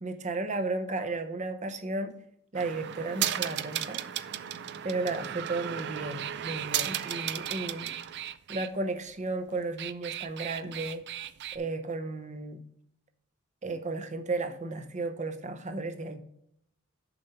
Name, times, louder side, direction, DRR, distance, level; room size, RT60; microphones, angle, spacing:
voice 1, 0.0-2.1 2.5-4.0 4.8-7.9 8.5-11.0 11.5-12.6 13.6-16.2, right 3 dB, 35° right, 8 dB, 0.8 m, -34 dB
sound 1, 2.5-8.7 9.6-11.6, right 10 dB, 55° right, 0.4 m, -35 dB
6.9 x 5.5 x 5.7 m, 0.75 s
head